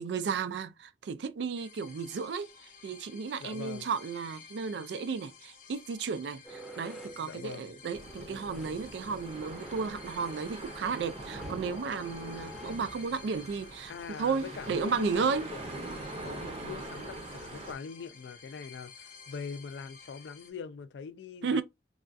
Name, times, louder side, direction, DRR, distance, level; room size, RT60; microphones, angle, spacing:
voice 1, 0.0-2.5 2.8-15.5 21.4-21.6, right 5 dB, 75° right, 0.4 m, -33 dB
sound 1, 1.6-20.5, left 6 dB, 50° left, 0.8 m, -53 dB
voice 2, 3.4-3.9 7.2-7.7 13.9-15.6 16.2-21.6, left 5 dB, 75° left, 0.4 m, -43 dB
sound 2, 6.4-13.1, equal, ahead, 0.6 m, -50 dB
sound 3, 7.9-17.7, right 2 dB, 35° right, 0.6 m, -43 dB
3.4 x 2.3 x 2.5 m
head